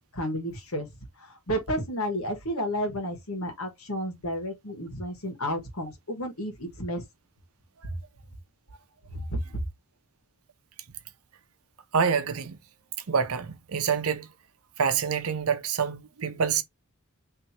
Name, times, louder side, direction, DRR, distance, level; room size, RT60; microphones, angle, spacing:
voice 1, 0.1-0.9 1.2-7.0 9.1-9.4, equal, 80° left, 1.6 m, -32 dB
voice 2, 11.9-12.6 13.1-14.3 14.8-16.6, right 6 dB, 85° right, 0.7 m, -26 dB
3.2 x 3.0 x 4.3 m
head